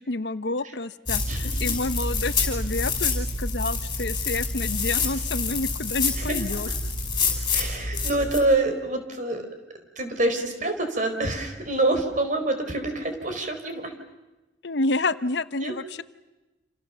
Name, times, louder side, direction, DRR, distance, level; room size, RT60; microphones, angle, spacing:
voice 1, 0.0-6.7 14.6-16.0, left 2 dB, 65° left, 14 dB, 0.8 m, -29 dB
sound 1, 1.1-8.4, left 4 dB, 20° left, 5.5 m, -27 dB
voice 2, 1.3-1.6 6.2-6.4 7.5-9.4 10.0-13.9 15.6-15.7, right 2 dB, 40° right, 6 dB, 4.1 m, -26 dB
28.0 x 28.0 x 6.9 m, 1.1 s
head